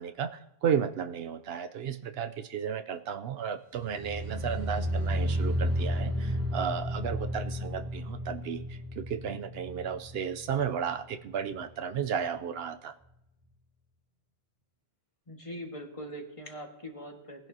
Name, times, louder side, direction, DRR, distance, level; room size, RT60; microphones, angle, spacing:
voice 1, 0.0-13.0, right 7 dB, 75° right, 10 dB, 0.8 m, -33 dB
sound 1, 3.8-10.9 11.2-11.6 12.0-12.1, equal, 40° right, 3.5 m, -32 dB
voice 2, 15.3-17.5, equal, 30° left, 1 dB, 1.8 m, -42 dB
19.0 x 10.5 x 2.8 m, 0.86 s
omnidirectional pair, 1.1 m